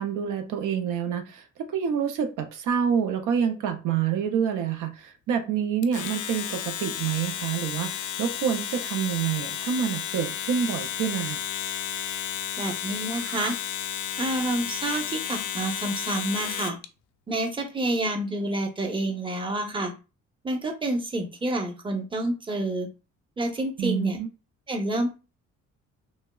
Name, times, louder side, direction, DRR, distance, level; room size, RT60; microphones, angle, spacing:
voice 1, 0.0-11.4 23.8-24.3, right 7 dB, 85° right, 6 dB, 0.6 m, -27 dB
Domestic sounds home sounds, 5.8-16.9, left 10 dB, 75° left, 0.5 m, -32 dB
voice 2, 12.6-13.6 14.2-16.8 17.3-19.9 20.4-22.9 23.4-24.2 24.7-25.1, right 1 dB, 15° right, 3 dB, 0.7 m, -28 dB
3.3 x 2.0 x 2.2 m, 0.30 s
cardioid pair, 90°, 30 cm